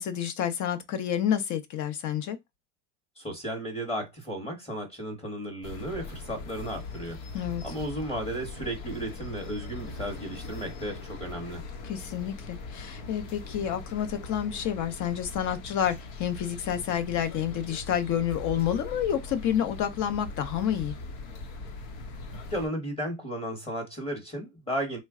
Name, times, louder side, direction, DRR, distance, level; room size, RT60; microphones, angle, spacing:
voice 1, 0.0-2.4 7.3-7.6 11.8-20.9, left 9 dB, 45° left, 0.7 m, -29 dB
voice 2, 3.2-7.2 7.6-11.7 22.5-25.0, equal, 15° left, 1.0 m, -34 dB
sound 1, 5.6-22.7, left 3 dB, 75° left, 1.0 m, -41 dB
3.2 x 2.2 x 3.6 m
supercardioid pair, 120°, 41 cm